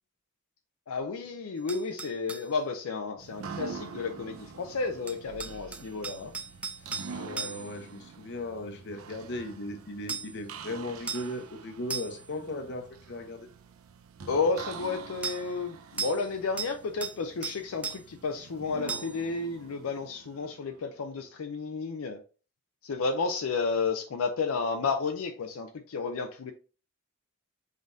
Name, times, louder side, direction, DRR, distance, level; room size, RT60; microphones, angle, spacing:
voice 1, 0.9-6.3 14.3-22.2 22.8-26.5, left 4 dB, 80° left, 0.5 m, -32 dB
sound 1, 1.7-2.5 5.1-7.8 10.1-10.4 11.1-11.3 11.9-12.3 15.2-15.4 16.0-16.3 16.6-17.2 17.4-18.0 18.9-19.2, right 5 dB, 5° right, 0.3 m, -37 dB
sound 2, 3.2-21.0, right 5 dB, 75° right, 0.5 m, -46 dB
voice 2, 7.1-13.5, left 1 dB, 55° left, 0.8 m, -37 dB
5.4 x 3.7 x 2.6 m
head